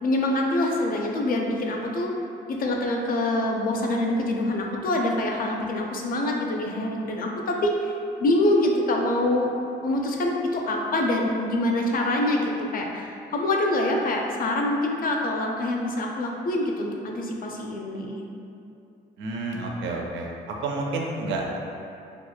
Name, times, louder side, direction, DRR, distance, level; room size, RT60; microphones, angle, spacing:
voice 1, 0.0-2.1 2.5-7.9 8.2-9.5 9.8-18.2, left 1 dB, 45° left, 0 dB, 0.4 m, -25 dB
voice 2, 19.2-20.3 20.6-21.6, right 2 dB, 75° right, -1 dB, 0.4 m, -29 dB
2.8 x 2.1 x 2.2 m, 2.6 s
supercardioid pair, 60°, 20 cm